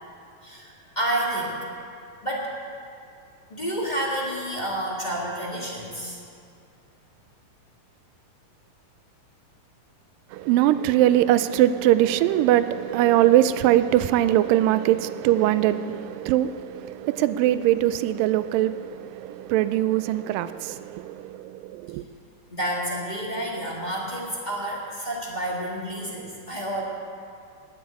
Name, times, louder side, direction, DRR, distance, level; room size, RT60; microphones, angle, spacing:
voice 1, 0.4-1.6 2.2-2.5 3.5-6.2 22.5-26.8, right 1 dB, 20° left, 1.4 m, -29 dB
voice 2, 10.3-22.0, right 13 dB, 85° right, 2.3 m, -21 dB
19.0 x 7.2 x 8.4 m
omnidirectional pair, 3.9 m